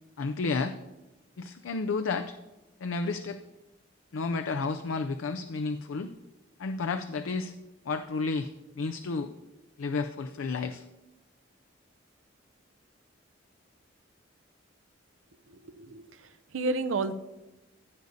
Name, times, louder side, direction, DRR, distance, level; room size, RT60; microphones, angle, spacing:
voice 1, 0.2-0.8 1.4-2.3 2.8-3.4 4.1-6.1 6.6-7.5 7.9-8.5 8.8-9.3 9.8-10.8, left 4 dB, 80° left, 9 dB, 0.4 m, -31 dB
voice 2, 15.5-17.1, right 3 dB, 80° right, 10 dB, 0.6 m, -32 dB
15.0 x 7.9 x 2.7 m, 1.0 s
head